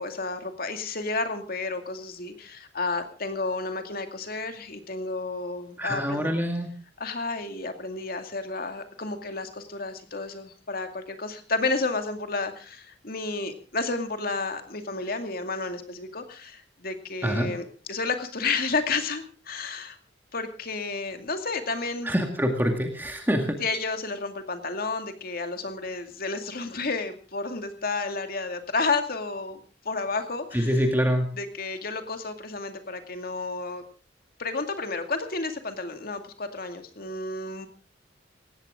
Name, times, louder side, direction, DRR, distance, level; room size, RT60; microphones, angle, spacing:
voice 1, 0.0-6.3 7.0-20.0 20.3-22.1 23.6-30.8 31.3-33.8 34.4-37.7, left 3 dB, 55° left, 6 dB, 2.3 m, -31 dB
voice 2, 5.8-6.7 17.2-17.5 22.0-23.6 30.5-31.3, equal, 10° right, 4 dB, 2.0 m, -25 dB
18.5 x 16.5 x 3.7 m, 0.36 s
head